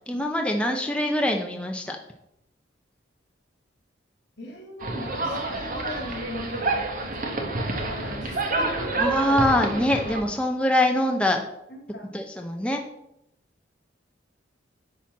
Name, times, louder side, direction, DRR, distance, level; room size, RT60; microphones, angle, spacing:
voice 1, 0.1-2.0 9.0-11.4 12.1-12.8, left 1 dB, 5° left, 2 dB, 0.7 m, -24 dB
voice 2, 4.4-6.7 7.0-9.0 11.7-12.1, left 1 dB, 65° left, 0 dB, 3.4 m, -38 dB
sound 1, 4.8-10.2, right 2 dB, 50° right, 1.6 m, -28 dB
10.5 x 4.3 x 7.3 m, 0.82 s
head